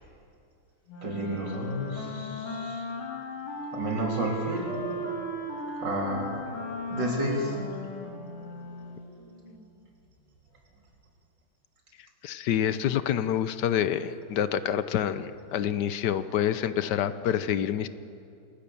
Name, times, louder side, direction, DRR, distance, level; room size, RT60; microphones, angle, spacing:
Wind instrument woodwind instrument, 0.9-9.1, left 1 dB, 80° left, 3.4 m, -37 dB
voice 1, 1.0-2.8 3.7-4.8 5.8-6.3 6.9-7.6, right 1 dB, 55° right, -1 dB, 4.0 m, -31 dB
sound 1, 4.6-11.1, equal, 80° right, 8.9 m, -48 dB
voice 2, 12.2-17.9, left 10 dB, 65° left, 13 dB, 1.2 m, -27 dB
27.5 x 15.5 x 7.0 m, 2.6 s
omnidirectional pair, 2.3 m